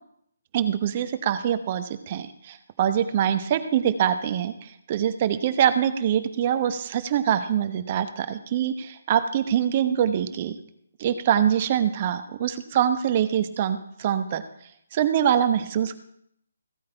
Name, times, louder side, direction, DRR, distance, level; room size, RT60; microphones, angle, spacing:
voice 1, 0.5-10.6 11.0-14.4 14.9-16.0, right 9 dB, 35° right, 11 dB, 0.9 m, -24 dB
15.5 x 8.5 x 4.5 m, 0.71 s
figure-of-eight pair, 145°, 0 cm